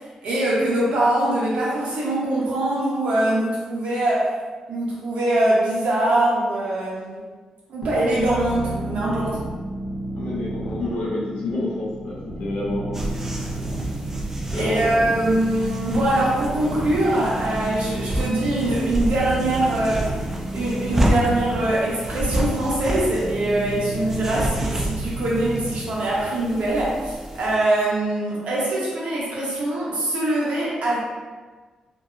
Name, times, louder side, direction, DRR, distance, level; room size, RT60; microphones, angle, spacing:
voice 1, 0.2-4.3 4.7-7.2 7.7-9.4 14.6-20.2 20.5-31.0, right 1 dB, 75° right, -6 dB, 0.8 m, -23 dB
sound 1, 7.8-25.7, right 2 dB, 15° left, 0.9 m, -31 dB
voice 2, 10.1-13.2 14.5-15.0, left 2 dB, 85° left, -5 dB, 0.6 m, -28 dB
sound 2, 12.9-27.6, right 1 dB, 15° right, 0.3 m, -30 dB
2.7 x 2.0 x 2.3 m, 1.4 s
cardioid pair, 105°, 2 cm